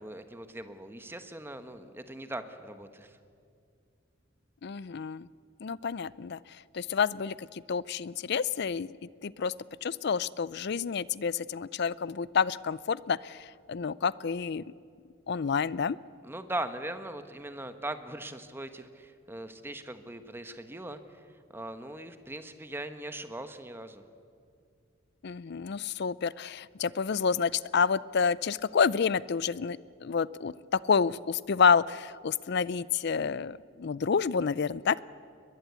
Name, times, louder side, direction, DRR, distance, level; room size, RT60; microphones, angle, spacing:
voice 1, 0.0-3.2 16.2-21.2 21.5-24.0, right 1 dB, 10° right, 9 dB, 1.2 m, -40 dB
voice 2, 4.6-5.3 5.6-6.4 6.7-8.9 9.2-9.5 9.8-14.6 15.3-16.0 25.2-35.0, left 6 dB, 60° left, 20 dB, 0.5 m, -29 dB
22.0 x 21.5 x 8.2 m, 2.4 s
head